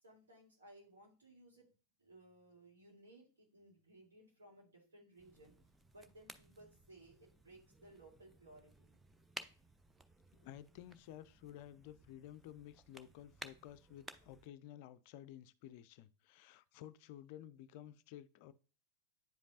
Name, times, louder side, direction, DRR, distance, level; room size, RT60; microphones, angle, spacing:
voice 1, 0.0-1.7 2.0-5.5 5.9-8.9, right 1 dB, 70° right, 3.0 m, -61 dB
sound 1, 5.2-14.5, right 1 dB, 10° right, 0.5 m, -57 dB
voice 2, 10.3-18.5, left 12 dB, 45° left, 0.4 m, -53 dB
9.1 x 5.1 x 2.5 m
figure-of-eight pair, 90°, 0 cm